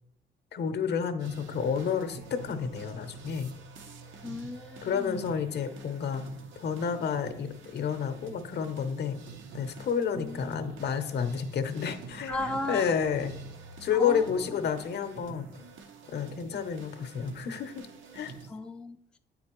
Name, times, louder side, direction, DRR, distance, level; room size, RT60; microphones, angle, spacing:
voice 1, 0.5-3.5 4.8-6.3 6.6-9.2 9.5-12.4 12.7-13.3 13.8-15.5 16.1-17.9 18.1-18.3, left 7 dB, 60° left, 8 dB, 0.7 m, -30 dB
sound 1, 1.2-18.5, right 4 dB, 75° right, 0.8 m, -47 dB
voice 2, 4.2-5.3 10.1-10.6 12.3-12.9 13.9-14.6 18.5-19.2, left 2 dB, 5° left, 5 dB, 0.4 m, -37 dB
8.5 x 4.0 x 3.0 m, 0.79 s
cardioid pair, 90°, 20 cm